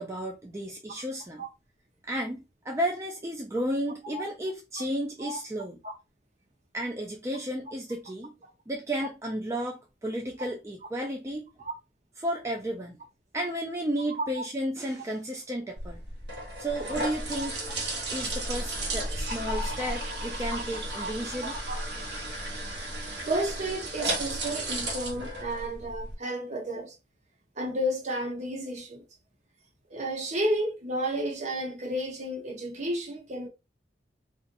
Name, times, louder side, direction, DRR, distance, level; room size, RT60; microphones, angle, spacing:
voice 1, 0.0-1.4 2.1-5.8 6.7-8.4 8.7-11.5 12.2-13.0 13.3-16.0 16.6-17.6 18.1-21.6, right 1 dB, 15° right, 0.4 m, -33 dB
sound 1, 15.8-26.1, right 1 dB, 75° right, 1.1 m, -34 dB
voice 2, 21.4-21.8 23.3-27.0 27.6-29.0 29.9-33.5, right 1 dB, 40° right, 0.8 m, -32 dB
3.9 x 2.5 x 2.5 m
head